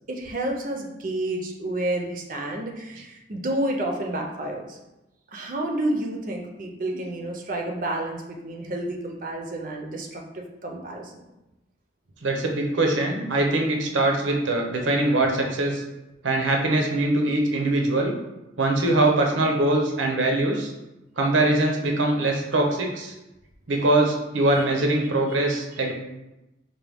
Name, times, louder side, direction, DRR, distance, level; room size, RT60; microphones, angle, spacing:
voice 1, 0.1-4.8 5.3-11.3 24.5-24.6 25.7-25.9, right 1 dB, 45° right, 1 dB, 0.5 m, -30 dB
voice 2, 12.2-15.8 16.2-18.1 18.6-20.7 21.2-23.1 23.7-25.9, right 2 dB, 90° right, 1 dB, 0.7 m, -22 dB
4.5 x 2.2 x 3.4 m, 0.96 s
head